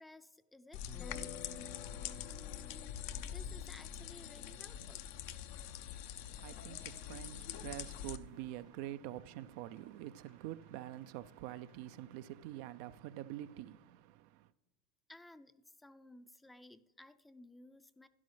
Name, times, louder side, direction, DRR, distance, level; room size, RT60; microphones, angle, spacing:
voice 1, 0.0-1.5 2.3-2.9 3.2-5.1 15.1-18.1, left 1 dB, 10° left, 0.4 m, -57 dB
sound 1, 0.7-8.2, left 10 dB, 65° left, 0.5 m, -45 dB
sound 2, 0.9-6.8, left 6 dB, 35° left, 0.7 m, -54 dB
sound 3, 4.6-12.4, equal, 90° left, 1.5 m, -70 dB
voice 2, 5.8-14.5, right 13 dB, 65° right, 0.3 m, -46 dB
12.0 x 10.5 x 3.3 m
hypercardioid pair, 95°, 0 cm